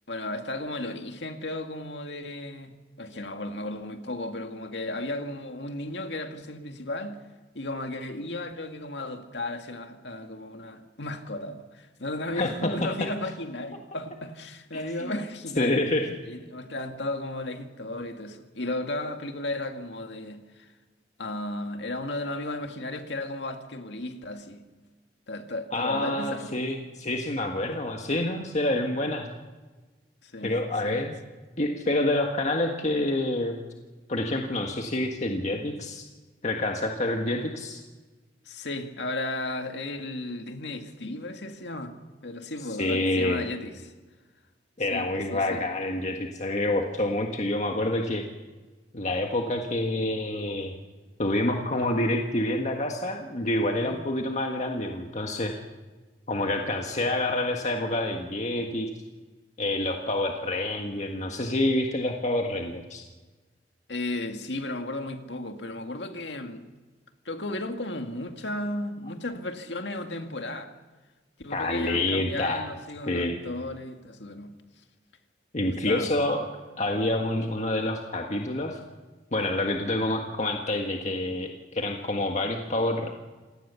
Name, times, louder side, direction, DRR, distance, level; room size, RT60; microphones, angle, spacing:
voice 1, 0.1-7.2 7.5-15.9 16.3-20.7 21.2-24.6 25.3-26.6 30.2-30.5 30.8-31.0 38.5-41.9 42.2-43.9 44.9-45.6 47.1-47.2 53.8-54.0 63.9-66.7 67.3-70.7 71.4-74.5 75.6-76.1, left 2 dB, 90° left, 2.1 m, -34 dB
voice 2, 14.7-15.2 15.6-16.1 25.7-29.3 30.4-31.1 31.6-33.5 34.1-36.0 36.4-37.8 42.8-43.4 44.8-48.2 48.9-50.7 51.2-55.5 56.3-58.9 59.6-63.0 71.5-72.6 73.1-73.4 75.5-76.5 76.8-78.8 79.3-83.1, left 1 dB, 45° left, 1.6 m, -27 dB
27.0 x 18.5 x 7.0 m
head